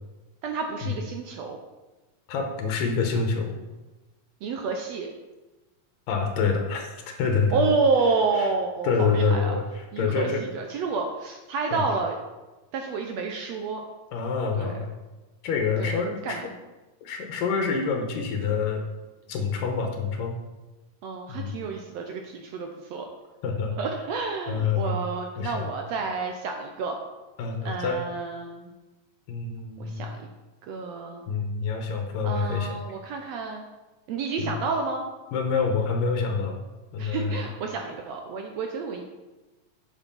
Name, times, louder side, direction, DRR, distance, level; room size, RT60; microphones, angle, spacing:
voice 1, 0.4-1.6 4.4-5.1 7.5-9.6 9.9-12.2 12.7-13.8 14.6-14.8 15.8-16.5 21.0-23.1 23.8-27.0 27.6-28.7 29.8-30.2 30.7-31.2 32.2-33.6 34.1-35.0 37.0-39.0, right 4 dB, 75° right, 3 dB, 1.5 m, -29 dB
voice 2, 2.3-3.5 6.1-7.7 8.4-8.5 8.8-10.4 11.7-11.8 14.1-14.9 15.4-16.4 17.0-18.8 19.3-20.4 21.3-21.5 23.4-23.7 24.5-25.0 25.4-25.7 27.4-28.0 29.3-30.0 31.3-32.8 34.4-34.5 35.3-36.5 36.9-37.4, left 5 dB, 80° left, 3 dB, 2.7 m, -26 dB
8.1 x 7.4 x 5.5 m, 1.1 s
omnidirectional pair, 3.9 m